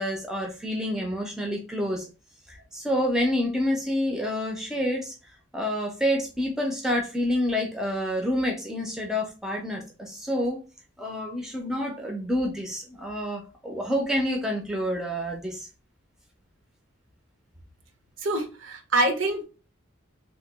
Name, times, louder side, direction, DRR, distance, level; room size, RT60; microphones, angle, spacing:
voice 1, 0.0-2.0 2.5-5.1 5.5-10.6 11.0-15.7, equal, 5° right, 0.5 m, -28 dB
voice 2, 18.2-19.4, right 1 dB, 70° right, 0.7 m, -25 dB
2.9 x 2.2 x 3.4 m
head